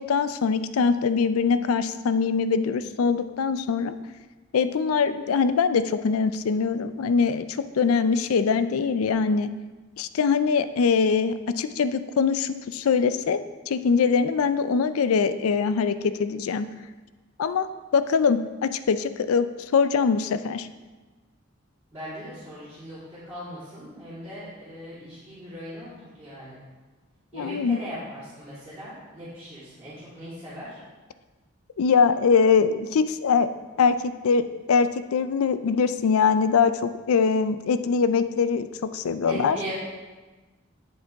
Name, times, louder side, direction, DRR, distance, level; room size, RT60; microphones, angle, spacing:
voice 1, 0.0-3.9 4.5-7.5 7.7-9.5 10.0-13.4 13.7-16.7 17.4-17.7 17.9-19.5 19.7-20.7 27.3-27.8 31.8-33.5 33.8-38.7 38.9-39.6, left 5 dB, 85° left, 12 dB, 0.4 m, -22 dB
voice 2, 21.9-25.9 26.2-26.6 27.3-30.8 39.2-39.7, equal, 10° right, -16 dB, 2.9 m, -39 dB
8.2 x 7.4 x 3.5 m, 1.2 s
head